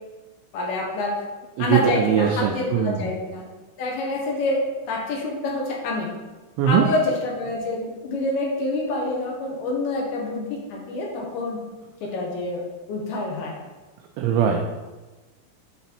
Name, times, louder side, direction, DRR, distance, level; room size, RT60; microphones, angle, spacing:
voice 1, 0.5-1.2 1.6-3.4 3.8-6.1 6.7-11.6 12.0-13.6, left 2 dB, 80° left, -1 dB, 2.2 m, -27 dB
voice 2, 1.7-3.1 6.6-6.9 14.2-14.6, right 8 dB, 85° right, 2 dB, 2.6 m, -21 dB
9.4 x 4.0 x 4.3 m, 1.2 s
omnidirectional pair, 5.9 m